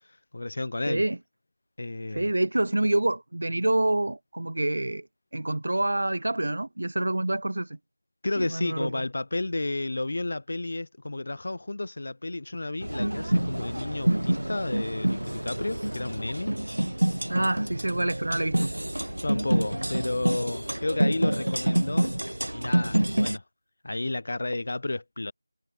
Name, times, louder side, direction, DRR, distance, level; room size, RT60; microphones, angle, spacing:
voice 1, 0.3-1.0 1.8-2.3 8.2-16.5 19.2-22.2 22.5-23.4 23.8-25.3, left 2 dB, 45° left, 2.6 m, -32 dB
voice 2, 0.9-1.2 2.1-5.1 5.3-7.8 8.4-8.9 17.3-18.7, right 1 dB, 55° right, 2.1 m, -27 dB
sound 1, 12.8-23.4, right 1 dB, 75° right, 0.5 m, -27 dB
figure-of-eight pair, 170°, 0 cm